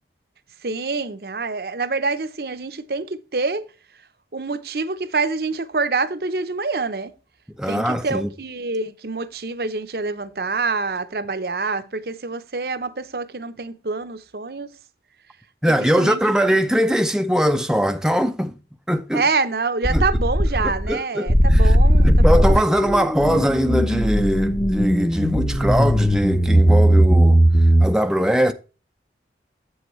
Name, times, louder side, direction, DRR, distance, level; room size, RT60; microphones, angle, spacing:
voice 1, 0.6-3.6 4.3-7.1 7.7-14.7 15.7-16.2 19.1-22.6, right 3 dB, 60° right, 0.8 m, -26 dB
voice 2, 7.6-8.3 15.6-18.6 18.9-19.2 19.9-20.0 20.6-21.8 22.0-27.4 27.8-28.5, equal, 5° right, 0.5 m, -21 dB
sound 1, 19.8-20.9 21.3-27.9, equal, 20° left, 0.8 m, -17 dB
8.2 x 8.0 x 3.1 m
head